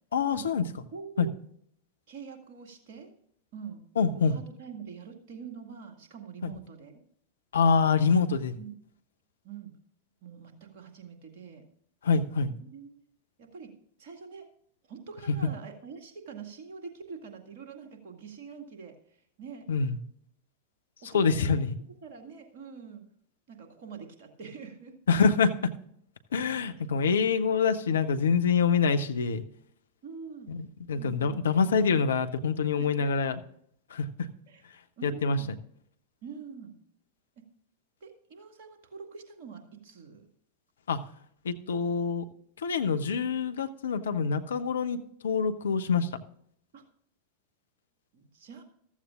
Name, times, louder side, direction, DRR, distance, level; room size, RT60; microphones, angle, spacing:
voice 1, 0.1-0.6 1.2-1.3 4.0-4.3 6.4-6.5 7.5-8.5 12.0-12.5 19.7-20.0 21.1-21.8 25.1-25.5 26.3-29.4 30.5-33.4 33.9-34.1 35.0-35.4 40.9-41.0 41.4-42.2 42.6-46.1, left 5 dB, 65° left, 9 dB, 0.8 m, -25 dB
voice 2, 0.9-1.4 2.1-3.1 3.5-3.8 4.1-7.0 8.6-8.7 9.4-9.8 10.2-11.6 12.6-13.0 13.4-13.7 14.0-14.5 14.9-19.0 19.4-19.7 21.0-21.5 22.0-23.0 23.5-25.0 30.0-30.6 30.9-31.5 32.8-33.1 34.5-34.6 35.0-35.6 36.2-36.8 37.4-37.5 38.0-40.3 46.7-46.8 48.1-48.6, right 6 dB, 50° right, 4 dB, 2.0 m, -45 dB
14.5 x 13.5 x 2.5 m, 0.67 s
figure-of-eight pair, 90°, 0 cm